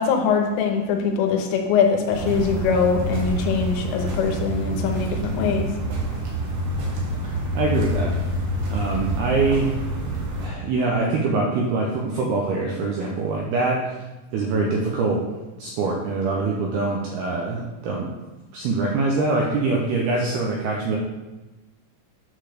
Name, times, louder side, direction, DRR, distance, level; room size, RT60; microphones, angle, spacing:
voice 1, 0.0-5.7, left 6 dB, 85° left, 4 dB, 3.6 m, -22 dB
sound 1, 2.1-10.5, right 1 dB, 65° right, 3.6 m, -27 dB
voice 2, 7.5-8.1 8.7-9.7 10.4-14.0 14.3-15.2 15.6-18.1 18.5-21.0, right 3 dB, 85° right, -1 dB, 2.3 m, -24 dB
9.4 x 4.0 x 6.4 m, 1.1 s
omnidirectional pair, 5.6 m